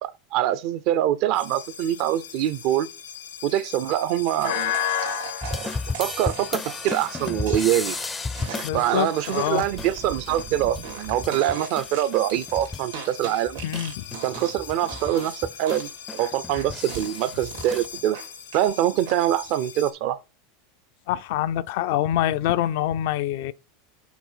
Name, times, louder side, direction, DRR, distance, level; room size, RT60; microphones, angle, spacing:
voice 1, 0.0-2.9 3.4-4.7 5.5-5.7 6.0-8.0 8.7-13.6 14.2-15.9 16.2-18.2 18.5-20.2, right 12 dB, 60° right, 0.6 m, -24 dB
sound 1, 1.3-19.9, left 10 dB, 85° left, 1.1 m, -37 dB
sound 2, 4.4-14.6 14.9-15.4 15.7-18.7 19.1-19.5, right 8 dB, 90° right, 2.2 m, -38 dB
sound 3, 5.4-12.9 13.2-17.9, left 3 dB, 15° left, 0.4 m, -34 dB
voice 2, 8.6-9.6 13.6-14.0 21.1-23.5, left 12 dB, 70° left, 0.5 m, -25 dB
6.1 x 3.9 x 5.5 m
supercardioid pair, 125°, 0 cm